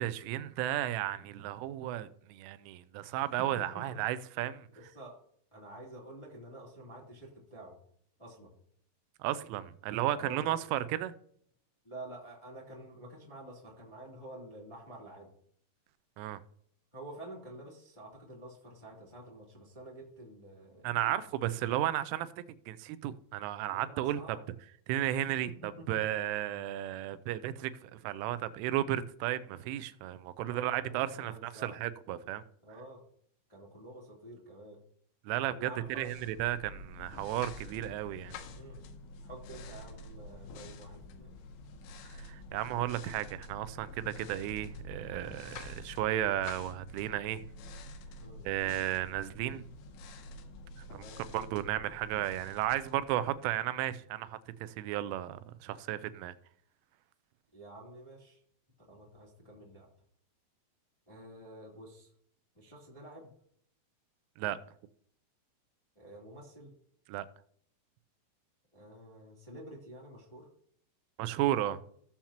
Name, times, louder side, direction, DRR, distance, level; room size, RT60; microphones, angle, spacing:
voice 1, 0.0-4.7 9.2-11.1 16.2-16.4 20.8-22.3 22.7-24.4 24.9-32.4 35.3-35.7 36.0-38.4 42.1-47.4 48.5-49.7 51.2-56.3 64.4-64.6 67.1-67.3 71.2-71.8, right 13 dB, 90° right, 14 dB, 3.1 m, -34 dB
voice 2, 3.1-4.0 4.7-5.1 5.5-7.8 8.2-8.5 10.1-10.6 11.8-15.3 16.9-21.3 23.7-24.4 25.5-26.0 30.5-31.8 32.6-33.0 33.5-34.8 35.4-36.0 38.5-38.8 39.2-41.4 48.2-48.5 50.9-51.2 57.5-58.4 58.9-59.9 61.1-62.1 62.5-63.3 65.9-66.7 68.7-70.5, right 1 dB, 10° left, -4 dB, 1.8 m, -49 dB
sound 1, 35.7-53.6, left 2 dB, 80° left, 2.2 m, -48 dB
16.0 x 7.2 x 2.9 m, 0.63 s
omnidirectional pair, 5.6 m